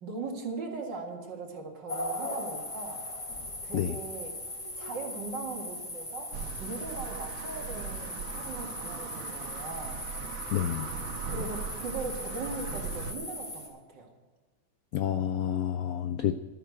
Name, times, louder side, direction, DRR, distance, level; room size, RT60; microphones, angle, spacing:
voice 1, 0.0-3.0 3.6-4.4 4.8-6.3 6.6-10.0 11.3-14.1, right 3 dB, 60° right, 2 dB, 2.6 m, -39 dB
sound 1, 1.9-13.7, left 1 dB, 35° left, 3.4 m, -39 dB
sound 2, 6.3-13.1, right 6 dB, 90° right, 1.8 m, -39 dB
voice 2, 10.5-10.9 14.9-16.4, left 10 dB, 80° left, 11 dB, 0.8 m, -29 dB
12.5 x 9.5 x 6.4 m, 1.3 s
omnidirectional pair, 2.2 m